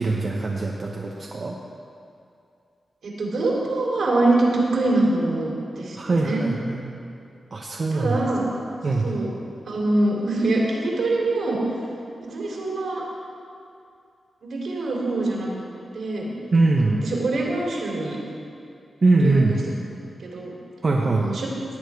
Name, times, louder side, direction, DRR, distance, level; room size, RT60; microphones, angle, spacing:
voice 1, 0.0-1.6 5.9-6.8 7.5-8.2 8.8-9.1 16.5-17.0 19.0-19.6 20.8-21.3, right 3 dB, 45° right, -2 dB, 1.0 m, -22 dB
voice 2, 3.0-6.4 7.9-8.5 9.0-9.3 9.7-11.6 12.2-13.0 14.4-15.7 15.9-16.3 16.8-18.2 19.2-19.4 20.2-20.5 21.0-21.5, right 2 dB, 75° right, -2 dB, 2.9 m, -24 dB
17.0 x 9.0 x 4.7 m, 2.5 s
wide cardioid pair, 110°, 0 cm